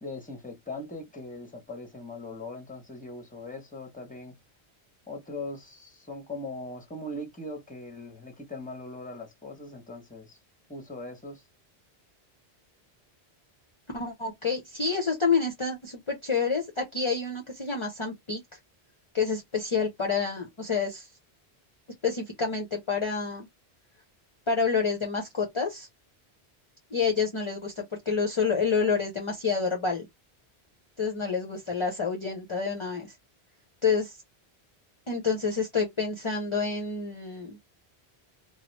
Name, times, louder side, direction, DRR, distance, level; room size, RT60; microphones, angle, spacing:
voice 1, 0.0-4.4 5.1-10.4 10.7-11.4, left 2 dB, 10° left, 0.9 m, -40 dB
voice 2, 13.9-18.4 19.1-21.1 22.0-23.5 24.5-25.9 26.9-30.1 31.0-33.1 33.8-34.2 35.1-37.6, left 5 dB, 35° left, 0.6 m, -28 dB
3.0 x 2.3 x 3.1 m
omnidirectional pair, 1.1 m